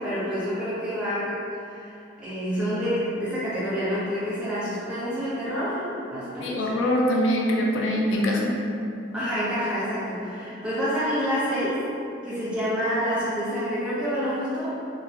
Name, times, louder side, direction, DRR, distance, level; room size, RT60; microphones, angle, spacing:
voice 1, 0.0-1.4 1.7-1.9 2.2-6.6 9.1-11.8 12.2-14.7, equal, 5° right, -13 dB, 0.9 m, -28 dB
voice 2, 6.4-8.5, equal, 85° left, -2 dB, 0.4 m, -23 dB
2.8 x 2.2 x 2.5 m, 2.6 s
head